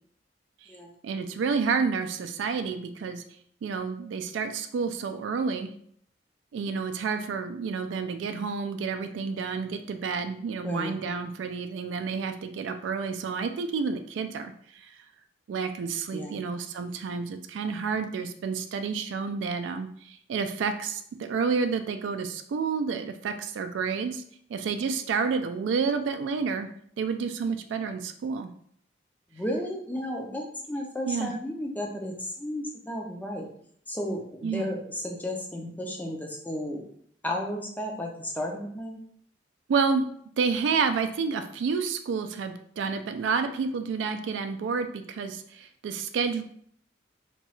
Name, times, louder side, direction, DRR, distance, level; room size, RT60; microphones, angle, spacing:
voice 1, 1.0-3.2 3.6-5.7 6.5-14.9 15.5-24.2 24.5-26.7 27.0-28.5 31.1-31.3 34.4-34.7 39.7-40.1 40.4-46.4, right 5 dB, 80° right, 8 dB, 0.3 m, -29 dB
voice 2, 10.6-11.0 16.1-16.4 29.3-33.5 33.9-36.8 37.2-39.0, left 1 dB, 10° left, 1 dB, 0.4 m, -33 dB
2.9 x 2.3 x 3.0 m, 0.64 s
head